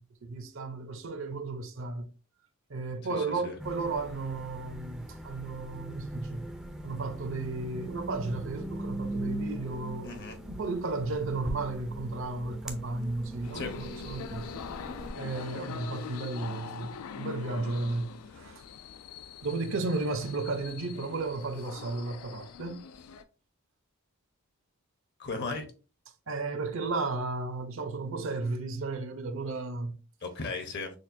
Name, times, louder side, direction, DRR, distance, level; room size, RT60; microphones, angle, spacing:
voice 1, 0.0-2.1 2.7-6.5 6.8-14.7 15.1-18.6 19.4-22.8 26.3-30.0, right 3 dB, 60° right, 0.6 m, -34 dB
voice 2, 3.1-3.6 10.0-10.4 13.5-13.7 25.2-25.7 30.2-30.9, left 3 dB, 50° left, 0.8 m, -36 dB
sound 1, 3.6-15.1, right 1 dB, ahead, 0.4 m, -40 dB
sound 2, 13.4-23.2, left 6 dB, 80° left, 0.4 m, -43 dB
6.3 x 2.2 x 2.6 m
head